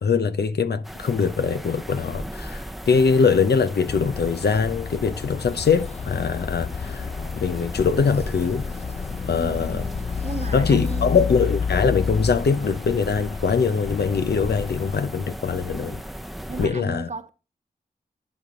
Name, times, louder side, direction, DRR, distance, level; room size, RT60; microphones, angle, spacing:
voice 1, 0.0-7.1 7.4-8.7 9.3-9.8 10.5-16.0 16.6-17.1, left 5 dB, 80° left, 0.7 m, -22 dB
sound 1, 0.8-16.7, equal, ahead, 0.7 m, -38 dB
sound 2, 3.9-15.0, left 5 dB, 40° left, 0.4 m, -31 dB
voice 2, 9.4-11.3 16.5-17.3, right 3 dB, 45° right, 1.1 m, -35 dB
11.0 x 4.3 x 3.7 m
cardioid pair, 45°, 17 cm